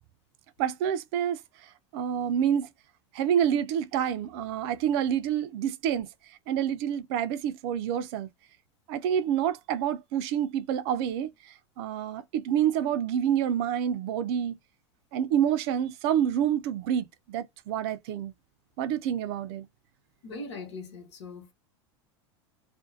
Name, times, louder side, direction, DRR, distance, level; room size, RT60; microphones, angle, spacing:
voice 1, 0.6-1.4 1.9-2.7 3.1-6.1 6.5-8.3 8.9-11.3 11.8-14.6 15.1-18.3 18.8-19.6, right 9 dB, 60° right, 0.5 m, -27 dB
voice 2, 20.2-21.5, left 3 dB, 80° left, 1.2 m, -40 dB
2.5 x 2.2 x 2.5 m
hypercardioid pair, 105°, 15 cm